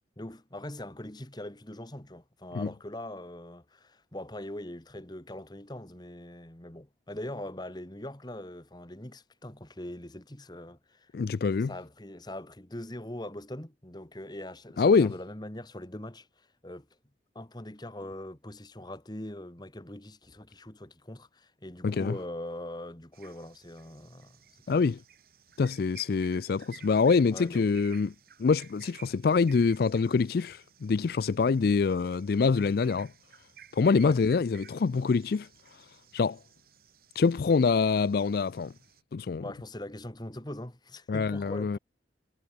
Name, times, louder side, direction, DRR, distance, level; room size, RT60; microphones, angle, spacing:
voice 1, 0.2-11.1 11.7-16.9 17.4-24.8 27.3-27.7 34.0-34.2 39.4-41.8, left 1 dB, 25° left, 1.9 m, -42 dB
voice 2, 11.1-11.7 14.8-15.1 21.8-22.1 24.7-25.0 25.6-28.1 28.4-33.1 33.7-35.5 36.1-36.4 37.1-38.7 39.1-39.4 41.1-41.8, left 5 dB, 55° left, 0.4 m, -25 dB
sound 1, 23.1-39.0, right 8 dB, 55° right, 4.4 m, -56 dB
head